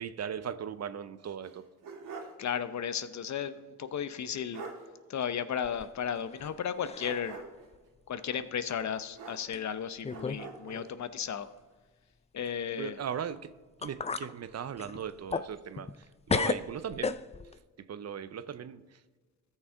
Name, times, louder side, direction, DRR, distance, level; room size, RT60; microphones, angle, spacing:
voice 1, 0.0-1.7 12.8-13.5 13.8-17.2 17.8-19.0, right 8 dB, 45° right, 0.6 m, -38 dB
sound 1, 1.4-2.5 2.8-2.9 4.2-4.3 4.5-4.9 7.0-7.7 9.1-9.8 10.1-10.9, right 5 dB, 65° right, 1.7 m, -44 dB
voice 2, 2.4-4.6 5.1-7.4 8.1-11.5 12.3-13.0, left 8 dB, 50° left, 0.7 m, -34 dB
sound 2, 5.6-6.5 6.8-7.3 7.7-7.8 8.7-8.8 9.5-9.6 10.0-10.5 10.7-10.8 13.4-13.5 13.8-14.3 14.8-16.0 16.3-17.6, left 4 dB, 20° left, 0.4 m, -34 dB
14.0 x 6.5 x 3.7 m
supercardioid pair, 60°, 35 cm